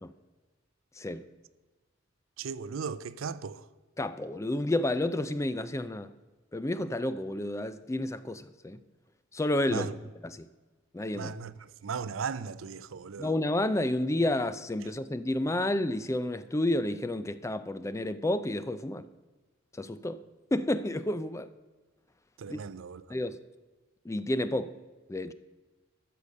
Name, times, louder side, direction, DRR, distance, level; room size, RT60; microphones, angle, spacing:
voice 1, 2.4-3.6 9.7-9.9 11.1-13.3 22.4-23.0, right 5 dB, 70° right, 0.5 m, -37 dB
voice 2, 4.0-6.1 6.5-8.8 9.3-9.9 10.2-10.5 10.9-11.3 13.2-19.1 19.7-20.2 20.5-21.5 22.5-22.6 23.1-23.4 24.0-24.8 25.1-25.3, left 1 dB, 15° left, 0.4 m, -30 dB
13.5 x 6.8 x 6.4 m
head